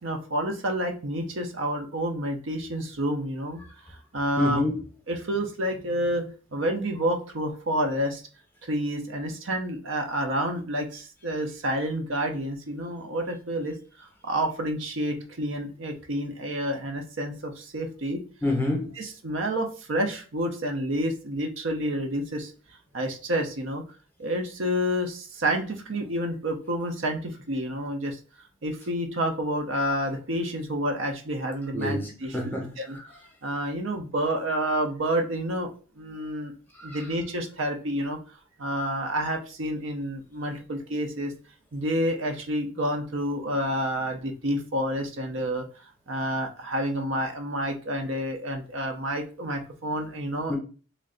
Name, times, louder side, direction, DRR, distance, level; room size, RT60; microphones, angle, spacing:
voice 1, 0.0-3.6 4.1-4.6 5.1-8.2 8.7-13.7 14.2-18.2 19.0-22.5 22.9-23.8 24.2-28.2 28.6-32.4 32.8-33.0 33.4-35.7 36.0-36.5 36.8-38.2 38.6-41.3 41.7-45.7 46.1-50.6, equal, 60° right, 0.6 m, -29 dB
voice 2, 4.4-4.8 18.4-18.9 31.7-32.7 36.8-37.0 50.5-50.6, left 2 dB, 10° left, 0.8 m, -27 dB
3.2 x 2.5 x 3.8 m
head